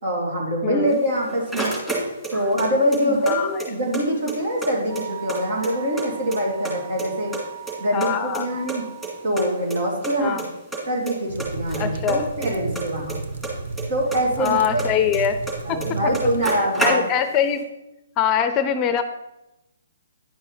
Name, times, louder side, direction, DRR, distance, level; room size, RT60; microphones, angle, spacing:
voice 1, 0.0-1.7 2.3-7.3 7.8-8.9 9.2-10.4 10.9-13.2 13.9-15.1 15.6-17.0, equal, 60° right, -1 dB, 2.8 m, -24 dB
voice 2, 0.6-1.0 3.0-3.6 7.9-8.5 10.2-10.4 11.8-12.2 14.4-15.4 15.7-15.8 16.8-17.6 18.2-19.0, left 8 dB, 25° left, 10 dB, 0.6 m, -23 dB
sound 1, 0.9-2.7 2.9-4.0 4.3-4.4 4.6-6.0 6.3-7.1 7.3-8.8 9.0-9.1 9.4-9.5 9.7-9.8 10.0-10.4 10.7-11.1 11.4-13.8 14.1-15.5 15.8-15.9 16.1-17.4, right 2 dB, 5° right, 2.6 m, -29 dB
Wind instrument woodwind instrument, 4.9-9.3, right 13 dB, 40° right, 3.4 m, -39 dB
sound 2, 11.3-16.5, right 3 dB, 75° right, 0.7 m, -33 dB
10.0 x 5.6 x 4.0 m, 0.94 s
hypercardioid pair, 135°, 0 cm